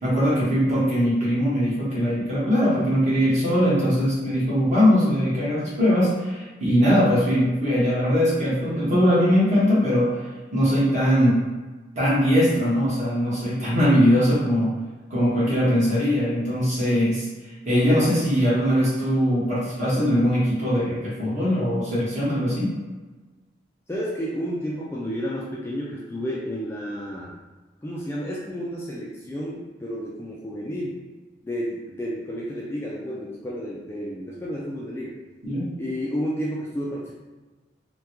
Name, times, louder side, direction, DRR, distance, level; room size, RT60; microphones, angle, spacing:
voice 1, 0.0-10.3 10.5-11.4 12.0-14.7 15.1-17.3 17.6-22.7 35.4-35.7, equal, 40° right, -9 dB, 1.3 m, -21 dB
voice 2, 23.9-27.3 27.8-31.0 31.4-35.2 35.8-37.1, equal, 15° left, -5 dB, 0.3 m, -31 dB
3.4 x 2.2 x 2.9 m, 1.3 s
head